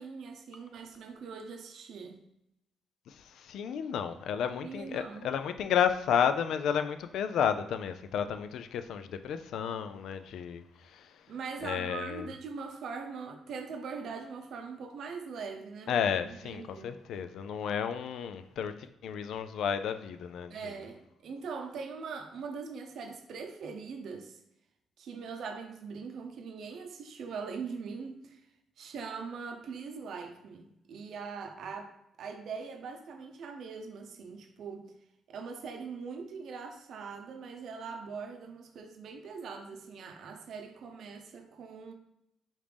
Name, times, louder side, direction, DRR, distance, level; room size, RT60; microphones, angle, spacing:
voice 1, 0.0-2.2 4.6-5.3 11.3-16.9 20.5-24.4 25.0-28.4 28.8-34.9 35.3-41.9, right 5 dB, 65° right, 0.6 m, -42 dB
voice 2, 3.1-11.3 11.6-12.2 15.9-20.6, left 8 dB, 75° left, 0.3 m, -32 dB
5.0 x 2.5 x 3.3 m
cardioid pair, 90°, 0 cm